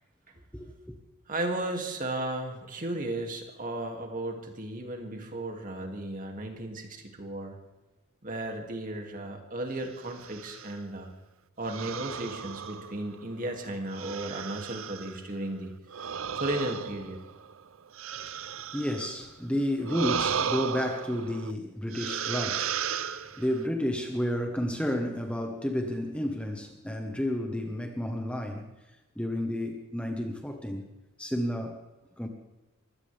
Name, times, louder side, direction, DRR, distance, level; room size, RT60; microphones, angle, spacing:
voice 1, 0.5-0.9 18.2-18.4 18.7-28.7 29.2-30.9 31.2-31.8 32.2-32.3, left 1 dB, 5° left, 3 dB, 1.3 m, -31 dB
voice 2, 1.3-7.6 8.2-11.1 11.6-15.7 16.0-17.2, right 1 dB, 40° right, 3 dB, 2.6 m, -35 dB
sound 1, 10.1-10.8 11.7-13.3 13.9-15.2 15.9-19.3 19.8-21.5 21.9-23.6, right 7 dB, 70° right, 0.7 m, -35 dB
23.5 x 16.5 x 3.5 m, 1.0 s
head